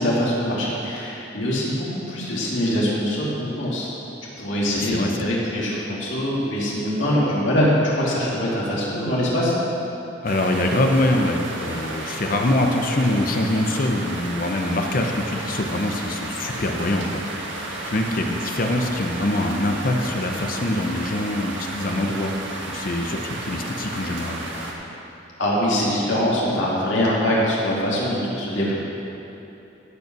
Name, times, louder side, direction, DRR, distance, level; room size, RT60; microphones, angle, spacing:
voice 1, 0.0-3.9 4.4-9.5 25.4-28.7, equal, 85° left, -6 dB, 2.7 m, -23 dB
voice 2, 4.7-5.3 10.2-17.5 17.8-22.3 22.7-24.4, left 1 dB, 50° left, 3 dB, 0.8 m, -24 dB
sound 1, 10.3-24.7, right 2 dB, 80° right, 1.7 m, -33 dB
16.0 x 5.5 x 6.1 m, 2.9 s
head